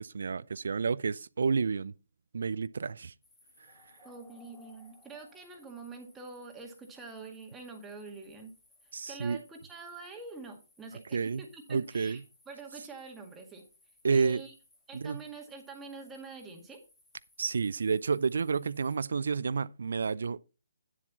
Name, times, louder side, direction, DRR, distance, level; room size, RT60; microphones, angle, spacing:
voice 1, 0.0-1.9 2.3-3.1 8.9-9.4 10.9-11.4 11.7-12.2 14.0-14.4 14.9-15.2 17.4-20.4, right 5 dB, 60° right, 0.4 m, -30 dB
sound 1, 3.2-19.0, left 3 dB, 10° left, 1.9 m, -64 dB
voice 2, 4.0-8.5 9.1-12.2 12.5-13.6 14.1-14.5 14.9-16.8, right 4 dB, 10° right, 1.9 m, -46 dB
9.8 x 7.4 x 4.1 m
figure-of-eight pair, 140°, 0 cm